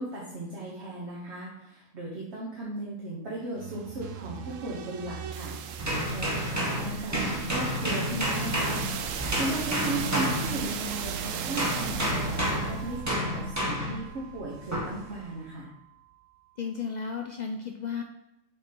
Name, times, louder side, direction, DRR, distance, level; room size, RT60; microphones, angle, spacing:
voice 1, 0.0-15.7, right 2 dB, 60° right, -4 dB, 1.3 m, -36 dB
sound 1, 3.6-15.4, right 8 dB, 80° right, 1.0 m, -37 dB
sound 2, 5.8-11.1 11.6-14.1 14.7-15.0, equal, 15° right, 1.1 m, -30 dB
voice 2, 16.6-18.0, left 6 dB, 75° left, 3 dB, 0.4 m, -34 dB
6.7 x 3.8 x 4.3 m, 0.93 s
omnidirectional pair, 1.3 m